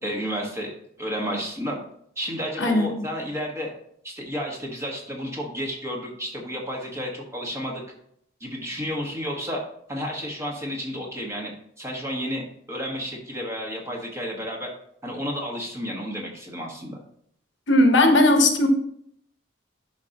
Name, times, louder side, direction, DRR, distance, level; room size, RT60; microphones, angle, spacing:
voice 1, 0.0-0.7 1.0-1.8 2.2-3.7 4.0-7.8 8.4-9.6 9.9-14.7 15.0-17.0, equal, 15° right, -1 dB, 1.4 m, -31 dB
voice 2, 2.6-2.9 17.7-18.7, left 1 dB, 65° left, 4 dB, 1.1 m, -17 dB
11.0 x 5.1 x 2.9 m, 0.68 s
head